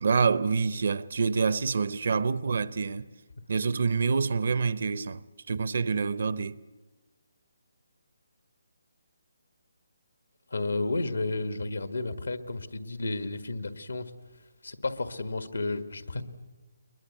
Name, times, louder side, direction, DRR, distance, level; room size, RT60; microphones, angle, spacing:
voice 1, 0.0-3.1 3.5-6.6, right 5 dB, 60° right, 0.7 m, -27 dB
voice 2, 10.5-14.1 14.6-16.2, left 2 dB, 90° left, 1.6 m, -32 dB
22.5 x 21.5 x 8.3 m
figure-of-eight pair, 155°, 0 cm